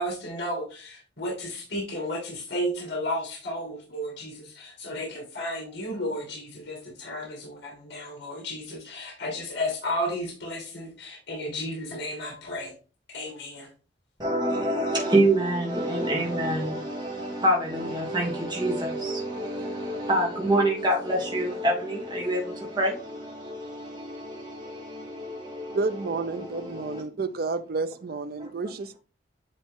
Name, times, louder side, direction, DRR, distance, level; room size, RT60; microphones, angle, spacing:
voice 1, 0.0-12.7 13.1-13.7, equal, 65° left, 2.2 m, -33 dB
voice 2, 14.2-25.8 26.4-27.0, right 1 dB, 25° right, 1.5 m, -27 dB
voice 3, 25.7-29.0, right 3 dB, 55° right, 0.5 m, -30 dB
9.2 x 3.2 x 3.6 m
head